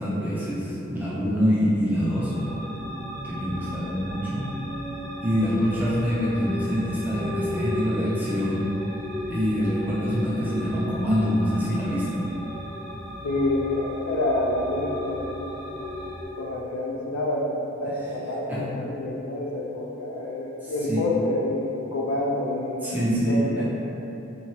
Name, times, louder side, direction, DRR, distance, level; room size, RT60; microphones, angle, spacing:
voice 1, 0.0-2.3 3.2-4.5 5.2-8.7 9.3-12.3 18.5-18.6 20.6-21.0 22.8-23.7, equal, 10° right, -8 dB, 0.4 m, -25 dB
sound 1, 1.9-16.3, left 1 dB, 80° right, 1.3 m, -35 dB
voice 2, 13.2-15.2 16.3-23.0 23.3-23.7, left 2 dB, 85° left, -3 dB, 0.4 m, -27 dB
2.9 x 2.3 x 2.7 m, 2.9 s
head